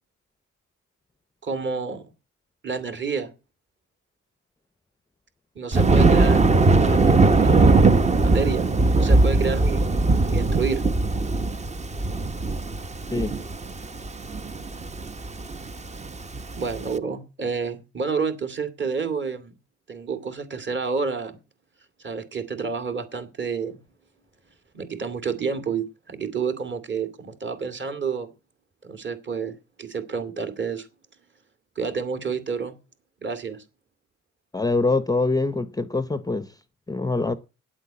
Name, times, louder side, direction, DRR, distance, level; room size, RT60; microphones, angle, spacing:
voice 1, 1.4-2.0 2.6-3.3 5.6-6.4 6.7-7.8 8.2-10.8 16.6-19.6 19.9-21.4 22.0-23.8 24.7-28.3 28.8-30.9 31.8-32.8 33.2-33.6, right 5 dB, 40° right, 2.3 m, -29 dB
Thunder, 5.7-16.8, right 3 dB, 25° right, 0.8 m, -20 dB
voice 2, 34.5-36.5 36.9-37.3, left 3 dB, 10° left, 0.7 m, -24 dB
9.1 x 8.2 x 8.7 m
cardioid pair, 90°, 30 cm